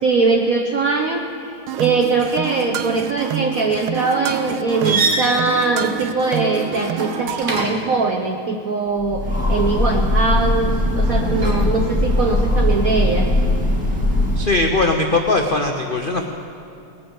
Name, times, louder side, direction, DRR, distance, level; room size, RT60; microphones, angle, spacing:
voice 1, 0.0-13.3, right 3 dB, 55° right, 2 dB, 1.0 m, -21 dB
sound 1, 1.7-7.6, right 9 dB, 85° right, 1.5 m, -28 dB
sound 2, 4.8-8.0 11.0-11.7, right 3 dB, 40° right, 1.7 m, -26 dB
Train, 9.0-14.7, left 1 dB, 5° right, 2.2 m, -20 dB
voice 2, 14.4-16.3, left 2 dB, 65° left, 3 dB, 0.5 m, -20 dB
19.5 x 9.1 x 7.1 m, 2.8 s
omnidirectional pair, 2.3 m